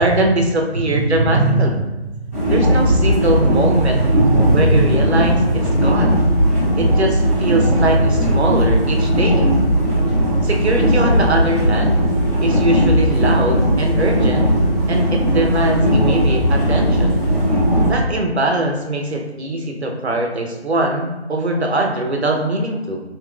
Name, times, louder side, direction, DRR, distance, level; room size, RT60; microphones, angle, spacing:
voice 1, 0.0-1.7 2.5-4.0 4.5-5.4 5.7-6.2 6.8-9.5 10.4-12.0 12.4-14.5 14.9-17.2 17.9-23.0, right 1 dB, 70° right, 1 dB, 0.8 m, -21 dB
voice 2, 0.9-1.7 4.0-6.0 6.7-7.0 12.3-12.7, right 2 dB, 30° left, -5 dB, 0.9 m, -22 dB
sound 1, 2.3-17.9, equal, 15° left, 0.6 m, -17 dB
4.8 x 3.0 x 2.3 m, 1.1 s
figure-of-eight pair, 150°, 34 cm